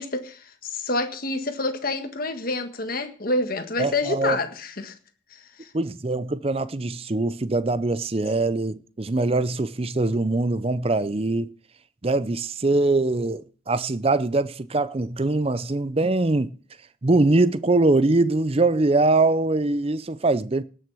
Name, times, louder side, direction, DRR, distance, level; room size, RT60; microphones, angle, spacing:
voice 1, 0.0-4.9 5.3-5.7, left 2 dB, 50° left, 1.6 m, -28 dB
voice 2, 3.8-4.4 5.7-11.5 12.0-16.5 17.0-20.6, right 2 dB, 30° right, 0.6 m, -22 dB
18.5 x 6.4 x 6.2 m
head